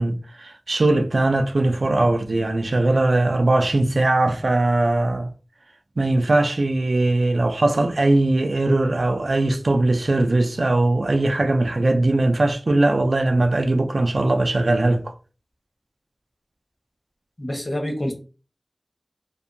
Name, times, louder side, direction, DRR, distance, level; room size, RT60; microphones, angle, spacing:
voice 1, 0.0-5.3 6.0-15.1, right 2 dB, 80° right, 0.3 m, -20 dB
voice 2, 17.4-18.1, left 1 dB, 45° left, 0.8 m, -27 dB
2.6 x 2.1 x 2.5 m
wide cardioid pair, 55°, 0 cm